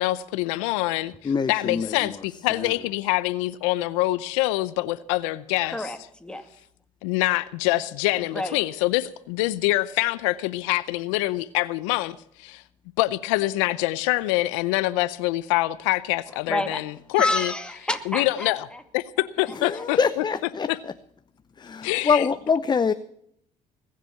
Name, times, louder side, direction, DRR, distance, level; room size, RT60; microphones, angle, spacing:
voice 1, 0.0-5.8 7.0-12.6 13.0-16.8 17.1-17.5 18.1-18.7 18.9-20.2 20.7-20.8 21.8-22.3, left 18 dB, 90° left, 0.6 m, -25 dB
voice 2, 1.2-2.1 2.6-2.7 19.6-20.7 21.6-22.9, left 5 dB, 30° left, 0.7 m, -24 dB
voice 3, 5.6-6.5 8.1-8.6 16.3-16.8 17.2-18.8 19.2-20.1, left 1 dB, 5° left, 2.3 m, -30 dB
20.5 x 7.5 x 7.0 m
supercardioid pair, 65°, 15 cm